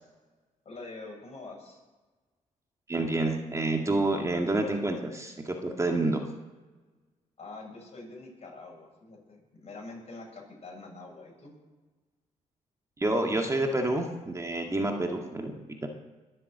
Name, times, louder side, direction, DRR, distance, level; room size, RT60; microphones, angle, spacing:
voice 1, 0.7-1.8 7.4-11.5, left 3 dB, 50° left, 0 dB, 6.9 m, -45 dB
voice 2, 2.9-6.2 13.0-15.5 15.8-15.9, right 2 dB, 20° right, 2 dB, 2.0 m, -28 dB
21.5 x 7.6 x 7.9 m, 1.3 s
cardioid pair, 90°, 14 cm